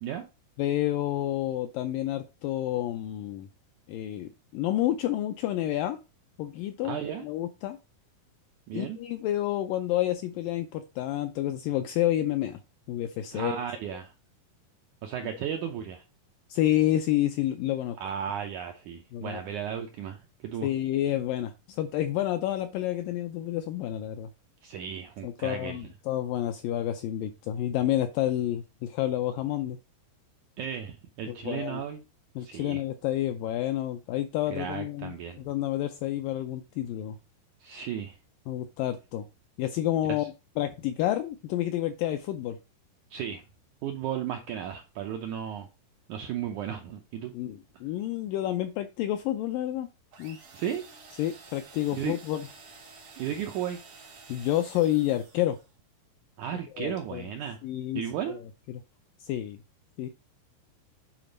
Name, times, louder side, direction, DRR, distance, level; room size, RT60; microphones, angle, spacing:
voice 1, 0.6-3.5 3.9-6.0 6.4-7.8 8.7-12.6 12.9-13.6 16.5-18.0 19.1-19.4 20.6-24.3 25.2-29.8 31.3-31.8 32.4-37.2 38.5-39.2 39.6-42.6 47.3-49.9 50.2-50.4 51.2-52.5 54.3-55.6 56.8-57.2 57.6-58.4 59.2-59.6 60.0-60.1, left 13 dB, 90° left, 2.0 m, -29 dB
voice 2, 6.8-7.3 8.7-9.0 13.3-14.1 15.0-16.0 18.0-20.7 24.6-25.8 30.6-32.0 32.4-32.8 34.5-35.4 37.6-38.2 40.2-40.3 43.1-43.4 43.8-45.7 46.1-47.3 50.5-50.8 51.9-52.2 53.2-53.8 56.4-57.6 58.0-58.4, right 9 dB, 80° right, 1.8 m, -34 dB
sound 1, 50.1-55.7, right 4 dB, 45° right, 2.4 m, -51 dB
9.0 x 4.3 x 5.2 m
omnidirectional pair, 4.5 m